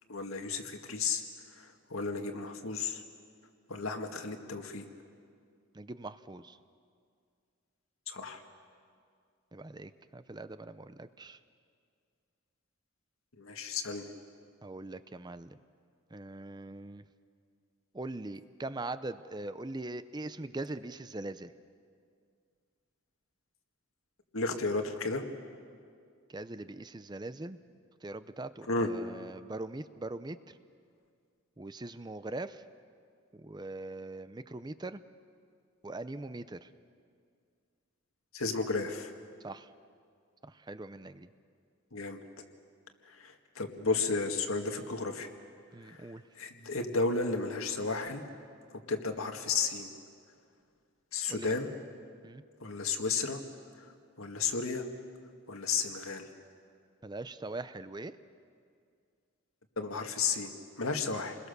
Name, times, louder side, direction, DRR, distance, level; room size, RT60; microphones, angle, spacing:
voice 1, 0.1-1.2 1.6-3.0 3.7-4.9 8.1-8.4 13.4-14.1 24.3-25.2 28.7-28.9 38.3-39.1 41.9-42.2 43.1-45.3 45.8-48.2 48.9-49.9 51.1-51.7 52.6-53.4 53.8-53.9 54.2-54.8 55.5-56.3 59.8-61.4, left 4 dB, 80° left, 5 dB, 1.9 m, -33 dB
voice 2, 5.7-6.6 9.5-11.4 14.6-15.6 16.1-17.0 17.9-21.5 26.3-27.6 28.0-30.6 31.6-32.6 33.3-35.0 35.8-36.7 39.4-39.7 40.4-41.3 45.7-46.2 51.3-51.5 52.2-52.4 57.0-58.1, right 2 dB, 20° right, 13 dB, 0.5 m, -41 dB
29.5 x 21.5 x 6.8 m, 2.3 s
head